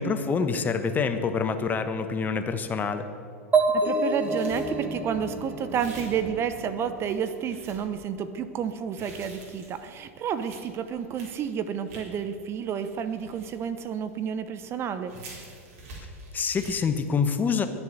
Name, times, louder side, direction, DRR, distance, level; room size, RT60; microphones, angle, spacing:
voice 1, 0.0-3.1 16.3-17.7, left 5 dB, 20° left, 8 dB, 1.2 m, -26 dB
sound 1, 3.5-7.2, right 3 dB, 15° right, 1.9 m, -27 dB
voice 2, 3.7-15.1, right 7 dB, 30° right, 11 dB, 0.9 m, -30 dB
sound 2, 4.1-5.0 5.7-6.7 7.0-7.8 8.7-12.2 12.7-14.3 14.6-14.7 15.0-16.9, right 1 dB, 55° right, 4.6 m, -46 dB
21.5 x 7.2 x 8.1 m, 2.3 s
hypercardioid pair, 95°, 8 cm